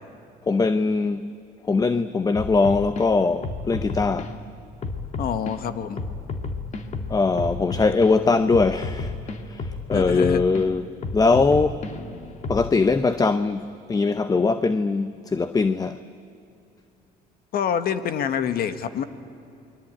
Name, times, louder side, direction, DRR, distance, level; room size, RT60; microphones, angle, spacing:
voice 1, 0.5-1.3 1.6-4.4 7.1-9.1 9.5-10.9 11.1-11.9 12.5-16.0, left 4 dB, 20° left, 0.8 m, -21 dB
sound 1, 2.3-3.0 3.4-4.3 4.8-5.5 6.0-8.1 8.5-10.6 11.0-12.7, left 3 dB, 45° left, 2.1 m, -32 dB
voice 2, 5.2-6.0 9.9-10.4 17.5-19.0, left 8 dB, 65° left, 1.5 m, -26 dB
28.5 x 22.0 x 9.0 m
cardioid pair, 110°, 17 cm